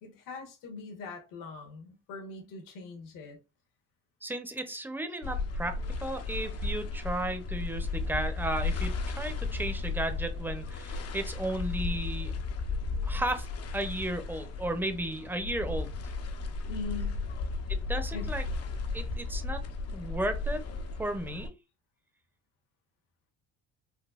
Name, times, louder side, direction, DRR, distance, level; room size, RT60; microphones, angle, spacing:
voice 1, 0.0-3.4 16.7-17.2 18.1-18.3, left 4 dB, 70° left, 1.3 m, -41 dB
voice 2, 4.2-12.3 13.1-13.5 13.7-15.9 17.7-18.4 18.9-19.6 19.9-20.6 21.0-21.5, right 1 dB, 5° right, 0.6 m, -34 dB
sound 1, 5.2-21.5, left 3 dB, 45° left, 0.6 m, -34 dB
4.1 x 2.3 x 2.3 m
supercardioid pair, 80°, 34 cm